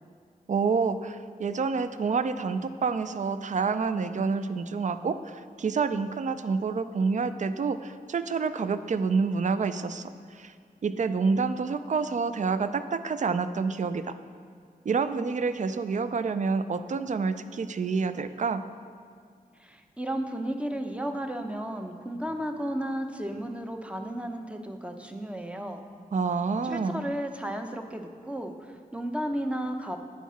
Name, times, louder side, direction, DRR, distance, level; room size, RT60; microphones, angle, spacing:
voice 1, 0.5-10.5 10.8-14.2 14.9-18.7 26.1-27.1, right 5 dB, 55° right, 11 dB, 0.4 m, -28 dB
voice 2, 19.6-25.8 26.6-30.0, right 1 dB, 10° right, 5 dB, 0.7 m, -33 dB
9.2 x 4.6 x 5.6 m, 2.1 s
cardioid pair, 55°, 15 cm